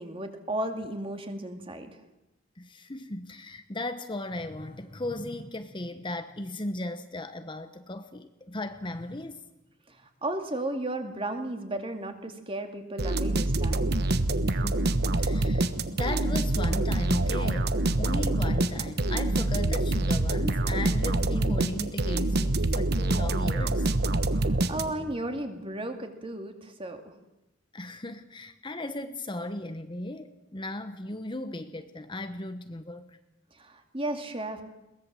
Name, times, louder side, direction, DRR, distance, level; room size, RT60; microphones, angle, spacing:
voice 1, 0.0-1.9 9.9-10.0 10.2-14.0 24.3-27.1 33.6-34.6, right 1 dB, 30° right, 6 dB, 2.4 m, -34 dB
voice 2, 2.6-9.4 14.4-23.9 27.7-33.1, left 1 dB, 25° left, 9 dB, 1.0 m, -36 dB
sound 1, 13.0-25.2, right 2 dB, 55° right, 1.2 m, -26 dB
22.0 x 19.5 x 7.6 m, 0.94 s
head